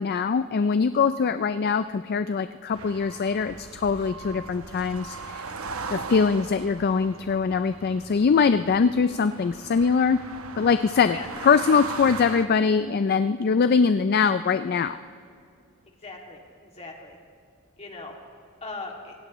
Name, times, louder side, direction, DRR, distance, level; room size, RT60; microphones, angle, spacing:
voice 1, 0.0-5.4 5.9-10.2 10.6-11.2 11.4-15.0, left 5 dB, 45° left, 11 dB, 0.4 m, -22 dB
sound 1, 2.7-12.5, right 4 dB, 70° right, 1.0 m, -39 dB
voice 2, 16.0-17.2 17.8-18.1 18.6-19.2, left 3 dB, 30° left, 0 dB, 2.4 m, -39 dB
26.0 x 17.0 x 3.1 m, 2.4 s
head